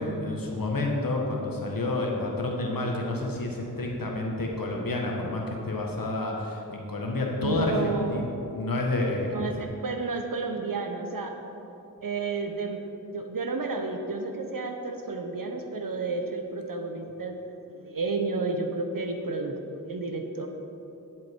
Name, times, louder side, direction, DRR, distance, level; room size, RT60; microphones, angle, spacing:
voice 1, 0.0-9.5, left 2 dB, 80° left, 0 dB, 1.5 m, -29 dB
voice 2, 7.4-8.2 9.3-11.3 12.0-12.8 13.1-20.5, right 3 dB, 75° right, 5 dB, 1.0 m, -31 dB
10.5 x 7.7 x 4.6 m, 2.9 s
wide cardioid pair, 50°, 34 cm